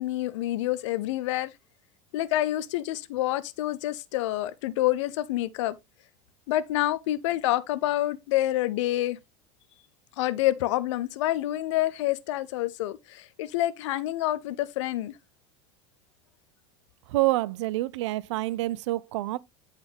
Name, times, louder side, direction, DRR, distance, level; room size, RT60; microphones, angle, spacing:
voice 1, 0.0-1.5 2.1-5.7 6.5-9.2 10.2-15.1, left 15 dB, 70° left, 0.6 m, -27 dB
voice 2, 17.1-19.4, right 17 dB, 70° right, 0.4 m, -27 dB
8.8 x 4.1 x 3.3 m
hypercardioid pair, 80°, 16 cm